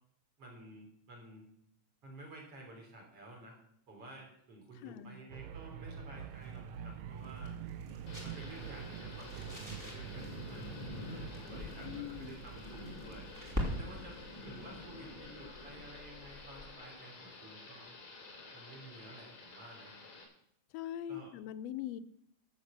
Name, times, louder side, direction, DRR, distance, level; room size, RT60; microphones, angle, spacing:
voice 1, 0.4-1.5 2.0-3.5 3.9-7.5 8.2-13.3 13.7-17.9 18.5-19.9 21.1-21.3, right 1 dB, 50° right, 0 dB, 4.2 m, -52 dB
voice 2, 4.8-5.2 11.8-12.4 20.7-22.0, left 11 dB, 80° left, 9 dB, 1.5 m, -42 dB
sound 1, 5.3-15.2, right 8 dB, 85° right, 1.4 m, -46 dB
sound 2, 6.2-16.8, left 1 dB, 5° right, 2.4 m, -46 dB
Thunder / Rain, 8.1-20.2, left 3 dB, 60° left, 4.0 m, -49 dB
13.0 x 7.1 x 7.3 m, 0.72 s
omnidirectional pair, 3.6 m